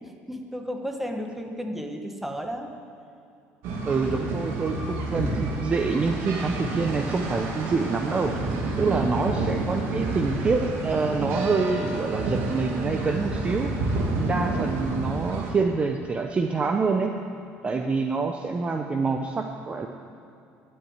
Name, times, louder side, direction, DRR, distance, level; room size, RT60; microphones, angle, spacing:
voice 1, 0.0-2.7 8.8-9.3, equal, 5° right, 3 dB, 1.3 m, -33 dB
sound 1, 3.6-15.5, right 2 dB, 75° right, 2.5 m, -29 dB
voice 2, 3.9-8.3 8.8-17.1 17.6-19.9, right 4 dB, 25° right, 4 dB, 0.7 m, -26 dB
12.5 x 7.9 x 8.9 m, 2.6 s
cardioid pair, 120°, 5 cm